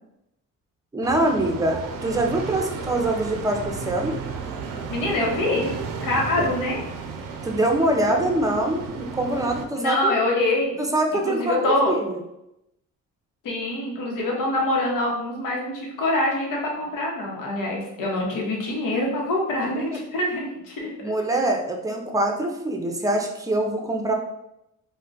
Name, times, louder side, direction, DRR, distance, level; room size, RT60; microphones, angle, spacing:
voice 1, 0.9-4.2 6.4-6.5 7.4-10.1 10.8-11.6 11.9-12.2 19.7-19.8 21.0-24.1, right 1 dB, 10° right, 2 dB, 0.5 m, -24 dB
sound 1, 1.0-9.7, right 5 dB, 85° right, 0.5 m, -33 dB
voice 2, 4.9-5.7 6.0-6.8 9.8-10.8 11.1-11.9 13.4-20.9, left 1 dB, 80° left, -1 dB, 0.9 m, -25 dB
2.3 x 2.2 x 3.8 m, 0.86 s
cardioid pair, 75°, 33 cm